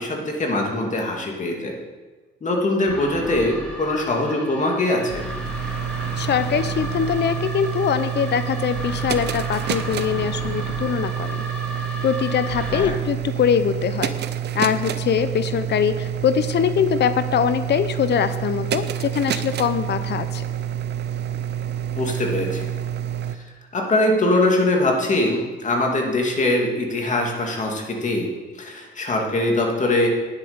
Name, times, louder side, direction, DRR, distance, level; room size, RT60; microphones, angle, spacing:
voice 1, 0.0-1.7 2.4-5.2 12.7-12.9 21.9-22.7 23.7-28.3 28.6-30.1, left 2 dB, 40° left, 1 dB, 2.4 m, -22 dB
sound 1, 2.9-12.8, equal, 5° left, 2.4 m, -34 dB
sound 2, 4.9-23.4, right 10 dB, 60° right, 0.6 m, -28 dB
voice 2, 6.2-11.4 12.0-14.1 14.5-20.4, left 8 dB, 60° left, 12 dB, 0.7 m, -22 dB
9.9 x 8.2 x 5.2 m, 1.3 s
cardioid pair, 90°, 20 cm